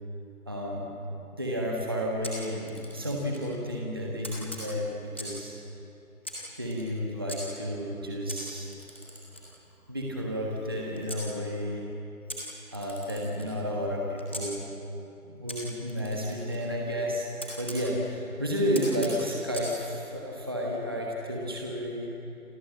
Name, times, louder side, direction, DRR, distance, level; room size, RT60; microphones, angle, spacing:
voice 1, 0.5-1.0 1.3-5.5 6.6-8.7 9.9-11.8 12.7-14.6 15.3-17.3 17.6-22.1, equal, 15° right, -2 dB, 1.4 m, -31 dB
Camera, 2.2-3.5 4.2-5.5 6.2-7.4 8.3-11.3 12.3-14.5 15.5-17.8 18.7-19.7, equal, 10° left, 1.5 m, -42 dB
28.0 x 24.5 x 7.7 m, 2.8 s
figure-of-eight pair, 175°, 44 cm